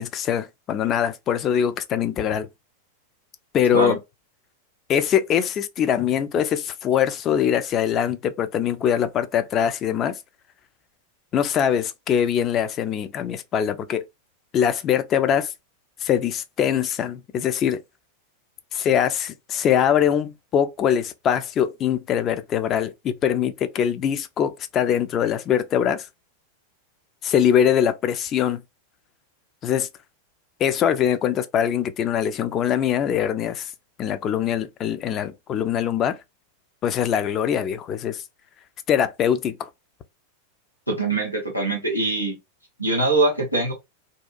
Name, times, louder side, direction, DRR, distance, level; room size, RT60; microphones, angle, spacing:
voice 1, 0.0-2.5 3.5-4.0 4.9-10.2 11.3-14.0 14.5-15.5 16.0-17.8 18.7-26.1 27.2-28.6 29.6-29.9 30.6-33.7 34.0-36.2 36.8-38.2 38.9-39.7, left 9 dB, 30° left, 0.4 m, -22 dB
voice 2, 40.9-42.4 42.8-43.7, right 2 dB, 90° left, 1.1 m, -22 dB
2.7 x 2.2 x 2.4 m
figure-of-eight pair, 90°, 0 cm